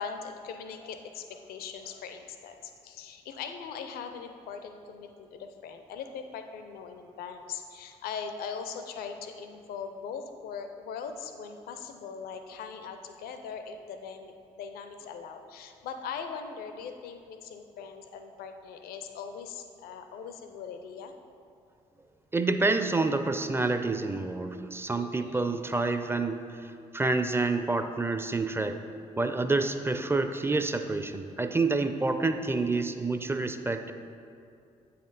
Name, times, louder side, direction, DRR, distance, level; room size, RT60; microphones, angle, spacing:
voice 1, 0.0-21.1 25.0-25.5, left 6 dB, 70° left, 7 dB, 0.5 m, -40 dB
voice 2, 22.3-28.8 29.2-33.9, right 3 dB, 15° right, 8 dB, 0.5 m, -28 dB
8.2 x 4.3 x 3.9 m, 2.5 s
hypercardioid pair, 45°, 16 cm